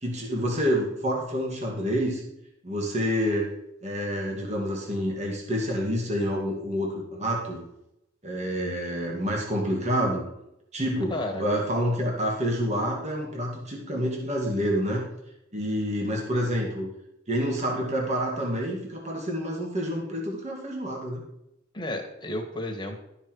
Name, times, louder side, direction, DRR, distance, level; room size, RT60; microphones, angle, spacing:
voice 1, 0.0-2.2 2.6-3.5 3.8-7.6 8.2-10.2 10.7-15.1 15.5-16.9 17.3-21.3, equal, 35° right, -1 dB, 2.4 m, -28 dB
voice 2, 11.1-11.5 21.7-23.0, left 1 dB, 25° left, 3 dB, 1.9 m, -32 dB
12.5 x 6.8 x 4.8 m, 0.83 s
head